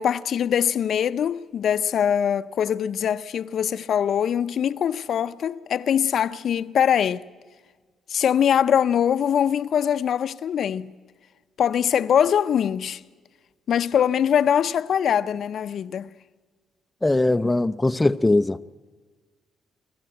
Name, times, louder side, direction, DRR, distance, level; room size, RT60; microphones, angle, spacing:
voice 1, 0.0-7.2 8.1-10.9 11.6-13.0 13.7-16.1, left 8 dB, 60° left, 0.6 m, -22 dB
voice 2, 17.0-18.6, left 2 dB, 15° left, 0.5 m, -20 dB
25.0 x 14.5 x 9.0 m
cardioid pair, 90°, 0 cm